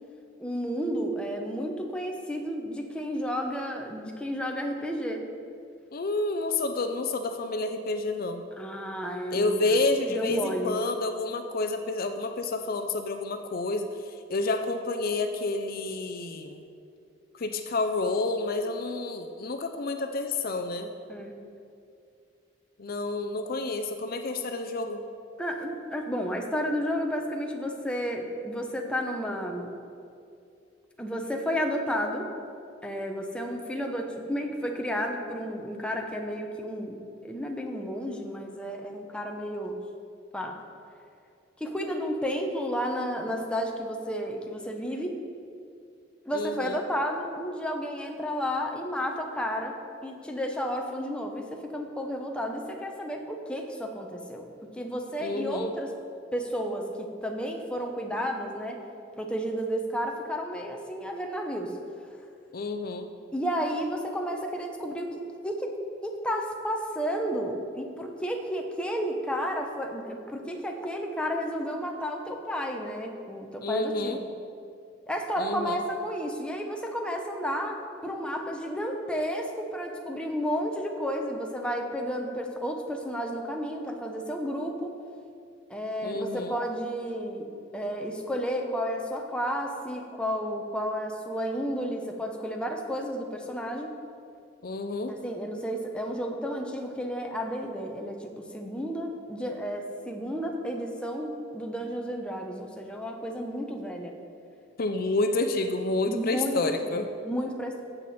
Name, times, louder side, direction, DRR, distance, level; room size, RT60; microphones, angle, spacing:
voice 1, 0.4-5.3 8.6-9.8 10.1-10.8 21.1-21.3 25.4-29.7 31.0-32.3 32.8-39.8 40.3-40.6 41.6-45.2 46.3-49.8 50.0-54.5 54.7-55.9 56.3-58.8 59.2-61.8 63.3-65.7 66.0-74.3 75.1-84.9 85.7-87.5 87.7-94.0 95.1-104.2 106.1-107.8, equal, 5° left, 2 dB, 0.9 m, -32 dB
voice 2, 5.9-8.4 9.3-13.9 14.3-16.6 17.3-20.9 22.8-25.0 46.3-46.8 55.2-55.7 62.5-63.1 73.6-74.2 75.4-75.8 86.0-86.6 94.6-95.1 104.8-107.1, left 2 dB, 55° left, 7 dB, 0.5 m, -29 dB
14.5 x 7.7 x 4.3 m, 2.4 s
head